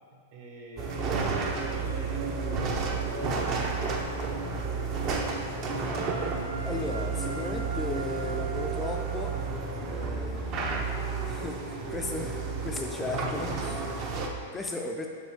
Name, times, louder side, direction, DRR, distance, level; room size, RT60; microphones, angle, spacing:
voice 1, 0.1-1.3 1.6-4.9 9.8-10.9 11.2-11.4 12.5-14.4, right 2 dB, 55° right, -2 dB, 1.3 m, -47 dB
sound 1, 0.8-14.3, right 4 dB, 35° right, 0.6 m, -31 dB
sound 2, 5.9-10.0, right 4 dB, 80° right, 1.0 m, -41 dB
voice 2, 6.6-9.5 9.8-10.4 11.3-13.7 14.5-15.1, left 3 dB, 10° left, 2 dB, 0.3 m, -36 dB
5.4 x 4.2 x 4.5 m, 2.2 s
hypercardioid pair, 145°, 0 cm